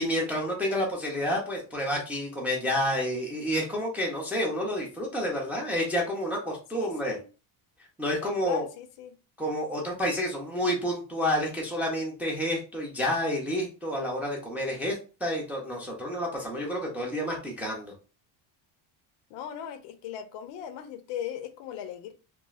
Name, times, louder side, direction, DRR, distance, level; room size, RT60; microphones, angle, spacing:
voice 1, 0.0-7.2 8.0-8.6 9.4-17.9, equal, 5° right, -2 dB, 0.4 m, -29 dB
voice 2, 6.7-7.3 8.2-9.2 19.3-22.1, left 9 dB, 70° left, 9 dB, 0.6 m, -38 dB
3.0 x 2.4 x 2.3 m, 0.34 s
cardioid pair, 155°, 45 cm